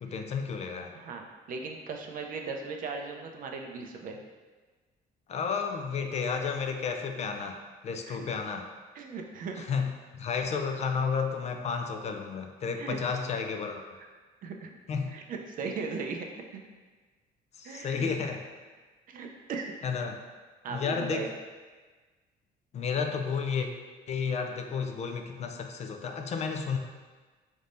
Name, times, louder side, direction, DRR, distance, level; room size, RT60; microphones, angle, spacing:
voice 1, 0.0-0.9 5.3-8.7 9.7-14.0 14.9-15.1 17.6-18.4 19.8-20.2 20.7-21.3 22.7-23.7 24.1-26.8, left 5 dB, 40° left, 5 dB, 0.4 m, -32 dB
voice 2, 0.9-4.2 8.1-8.4 8.9-9.7 12.8-13.0 14.4-14.7 15.1-16.6 17.6-18.3 19.1-19.7 20.6-21.3, right 4 dB, 55° right, 3 dB, 0.5 m, -38 dB
4.1 x 3.5 x 2.6 m, 1.3 s
cardioid pair, 110°, 17 cm